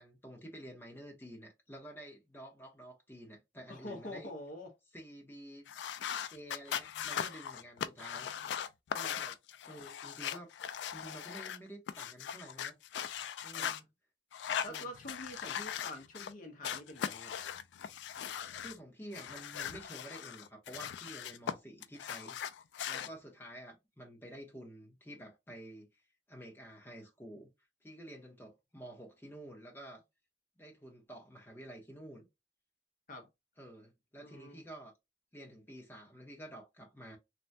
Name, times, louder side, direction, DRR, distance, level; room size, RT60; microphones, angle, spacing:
voice 1, 0.0-4.3 4.9-5.7 6.3-8.7 8.9-9.2 9.7-10.5 10.9-13.1 13.4-13.8 14.7-14.9 18.6-22.4 22.9-26.0 26.3-27.5 27.8-30.0 30.6-32.3 33.6-34.9 35.3-37.2, right 1 dB, 10° left, 0.8 m, -50 dB
voice 2, 3.7-4.7 9.1-9.3 13.6-13.8 14.6-17.3 33.1-33.3 34.2-34.6, left 1 dB, 45° left, 0.7 m, -46 dB
sound 1, 5.7-11.6 11.9-13.8 14.3-16.3 16.6-18.8 19.1-21.5 21.8-23.1, left 9 dB, 80° left, 0.3 m, -39 dB
3.3 x 2.2 x 2.6 m
head